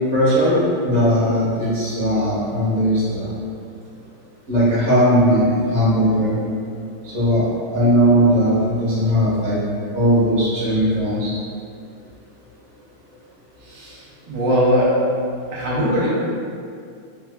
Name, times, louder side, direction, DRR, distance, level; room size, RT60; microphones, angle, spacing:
voice 1, 0.1-3.3 4.5-6.3 7.0-7.4 7.7-9.6 9.9-11.3, equal, 30° right, -10 dB, 0.9 m, -18 dB
voice 2, 13.6-15.0 15.5-16.1, equal, 75° right, -7 dB, 1.5 m, -20 dB
4.3 x 3.0 x 2.3 m, 2.3 s
omnidirectional pair, 2.3 m